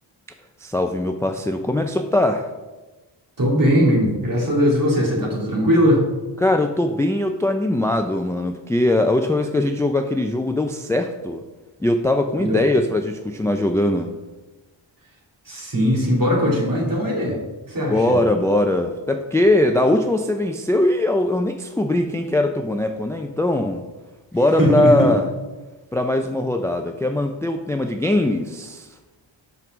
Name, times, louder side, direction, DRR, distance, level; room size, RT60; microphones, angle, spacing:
voice 1, 0.6-2.5 6.4-11.4 11.8-14.1 17.9-23.8 24.3-25.3 25.9-28.9, left 1 dB, 5° left, 6 dB, 0.4 m, -21 dB
voice 2, 3.4-6.0 12.4-12.7 15.5-17.4 17.7-18.2 24.6-25.1, equal, 45° right, -2 dB, 2.7 m, -19 dB
5.8 x 5.3 x 6.0 m, 1.2 s
cardioid pair, 85°, 47 cm